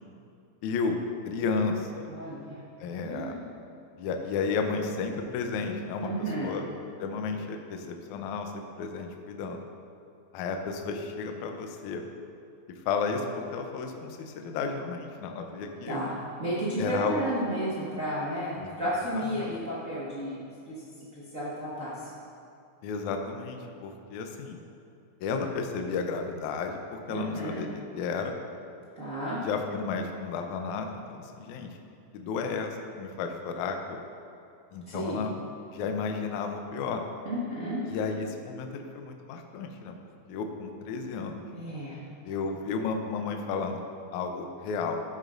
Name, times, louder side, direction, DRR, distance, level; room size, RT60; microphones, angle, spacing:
voice 1, 0.6-1.0 1.2-2.1 2.8-3.4 4.0-6.1 6.4-6.6 7.0-9.6 10.3-12.0 12.8-16.0 16.8-17.2 18.6-18.7 19.1-19.6 22.8-24.6 25.2-27.7 27.9-28.4 29.4-31.7 32.1-34.0 34.7-35.3 35.7-37.0 37.9-40.0 40.3-41.4 42.2-43.8 44.1-45.0, left 5 dB, 75° left, 4 dB, 1.8 m, -32 dB
voice 2, 2.1-2.6 3.0-3.4 6.0-6.5 15.9-20.8 21.1-21.9 27.1-27.6 28.9-29.4 34.9-35.2 37.2-37.8 41.5-42.0, right 1 dB, 60° right, -10 dB, 0.8 m, -32 dB
12.5 x 9.8 x 2.6 m, 2.5 s
omnidirectional pair, 4.1 m